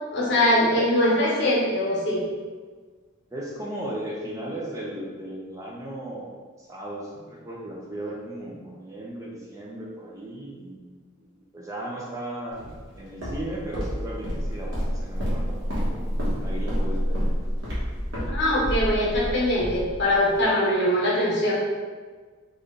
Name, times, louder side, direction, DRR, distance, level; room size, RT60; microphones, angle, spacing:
voice 1, 0.1-2.2 18.3-21.5, left 1 dB, 60° left, -5 dB, 1.2 m, -22 dB
voice 2, 3.3-6.3 6.6-10.8 11.2-12.6 12.9-16.1 16.4-17.2, right 1 dB, 15° right, -4 dB, 0.5 m, -36 dB
Walk footsteps, 12.6-20.5, equal, 70° right, 1.2 m, -29 dB
4.0 x 2.5 x 3.3 m, 1.5 s
head